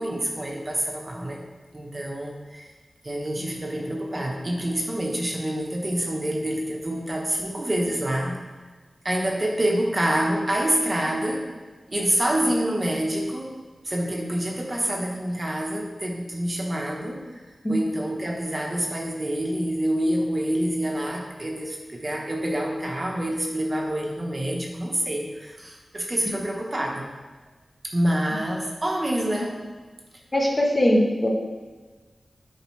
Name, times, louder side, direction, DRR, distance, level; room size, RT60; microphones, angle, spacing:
voice 1, 0.0-1.5 1.7-2.7 3.0-8.4 9.0-11.5 11.9-13.5 13.8-27.1 27.8-29.7, right 1 dB, 30° right, -1 dB, 1.0 m, -27 dB
voice 2, 30.3-31.3, left 1 dB, 25° left, -2 dB, 1.1 m, -21 dB
9.1 x 4.8 x 3.2 m, 1.3 s
wide cardioid pair, 110°, 0 cm